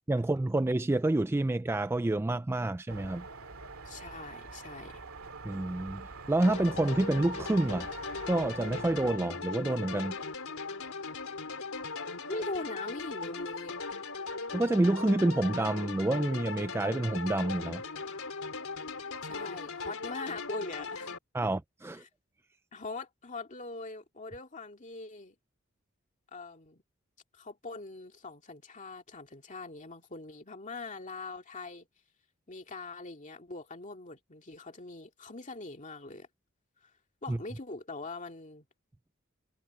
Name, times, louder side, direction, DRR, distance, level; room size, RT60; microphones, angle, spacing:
voice 1, 0.1-3.2 5.4-7.9 8.2-10.2 14.5-17.8 21.3-22.0 37.3-37.4, right 2 dB, 10° right, 0.3 m, -28 dB
sound 1, 2.9-9.1, right 4 dB, 75° right, 2.4 m, -45 dB
voice 2, 3.9-5.0 12.3-13.8 19.2-21.2 22.0-22.1 22.7-25.4 26.3-26.8 27.3-31.9 32.5-36.3 37.2-38.6, left 3 dB, 35° left, 2.4 m, -42 dB
sound 2, 6.4-21.2, left 4 dB, 75° left, 4.0 m, -38 dB
head